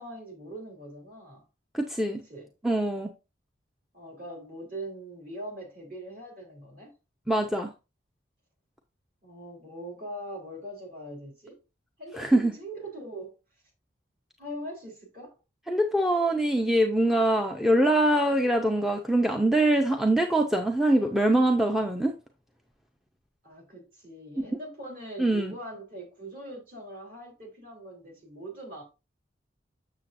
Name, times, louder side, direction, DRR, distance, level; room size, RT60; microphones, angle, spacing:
voice 1, 0.0-1.4 2.1-2.5 3.9-6.9 9.2-11.6 12.0-13.3 14.4-15.4 23.4-28.8, right 1 dB, 45° right, 3.5 m, -41 dB
voice 2, 1.7-2.2 2.6-3.1 7.3-7.7 12.2-12.5 15.7-22.1 24.4-24.5 25.2-25.5, right 1 dB, ahead, 0.5 m, -23 dB
7.4 x 6.7 x 2.5 m
head